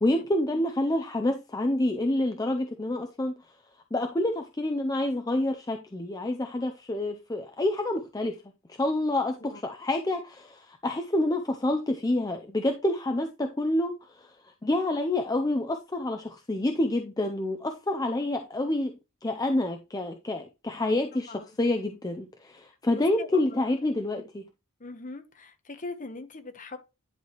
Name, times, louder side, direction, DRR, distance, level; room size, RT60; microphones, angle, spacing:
voice 1, 0.0-3.3 3.9-8.4 8.8-14.4 14.6-24.5, left 1 dB, 15° left, 0.5 m, -28 dB
voice 2, 22.9-23.7 24.8-26.8, left 3 dB, 35° left, 1.0 m, -41 dB
10.5 x 4.8 x 3.0 m
head